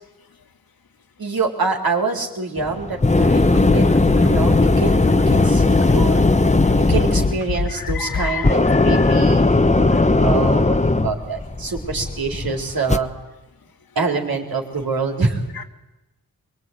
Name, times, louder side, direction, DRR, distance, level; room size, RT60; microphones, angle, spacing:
voice 1, 1.2-6.2 6.7-13.1 14.0-15.4, right 4 dB, 75° right, 2 dB, 4.2 m, -26 dB
sound 1, 2.6-13.0, left 2 dB, 20° left, 1.1 m, -17 dB
sound 2, 3.5-8.3, left 5 dB, 35° left, 0.8 m, -26 dB
voice 2, 7.7-9.5 15.6-15.7, left 7 dB, 75° left, 5 dB, 2.3 m, -31 dB
23.5 x 22.0 x 9.5 m, 1.0 s
cardioid pair, 60°, 36 cm